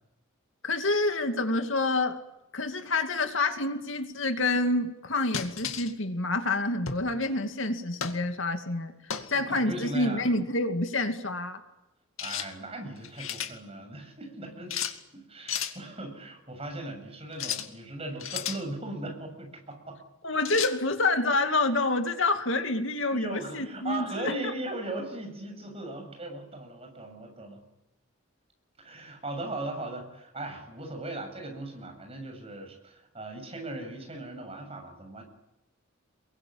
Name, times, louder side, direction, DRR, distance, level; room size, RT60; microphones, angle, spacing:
voice 1, 0.6-2.2 2.5-8.9 9.3-11.6 20.2-24.3, left 2 dB, 70° left, 7 dB, 2.4 m, -27 dB
sound 1, 5.3-5.9 6.9-7.1 8.0-8.2 9.1-9.4 12.2-12.5 13.0-13.5 14.7-15.0 15.5-15.8 17.3-17.7 18.2-18.6 20.5-20.8, left 8 dB, 85° left, 2.3 m, -33 dB
voice 2, 9.3-10.3 12.2-14.8 15.1-20.0 23.1-27.6 28.8-35.2, right 2 dB, 30° right, 3 dB, 7.3 m, -38 dB
28.5 x 22.5 x 8.8 m, 0.92 s
head